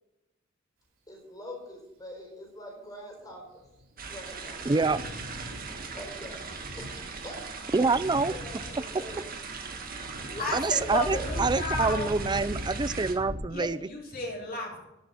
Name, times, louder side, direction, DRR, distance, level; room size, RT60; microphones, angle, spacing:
voice 1, 1.1-3.6 4.0-4.9 5.9-6.5 6.8-7.5 7.8-9.3 10.2-10.9 11.2-11.4, left 1 dB, 20° left, -3 dB, 4.2 m, -43 dB
Thunder, 3.6-13.3, equal, 75° right, 4.2 m, -40 dB
sound 1, 4.0-13.1, right 5 dB, 45° right, 1.8 m, -40 dB
voice 2, 4.7-5.0 7.7-8.3 10.5-13.8, right 4 dB, 20° right, 16 dB, 0.4 m, -26 dB
voice 3, 10.4-12.1 13.5-14.8, left 2 dB, 45° left, -2 dB, 3.8 m, -33 dB
12.0 x 6.9 x 9.6 m, 0.96 s
head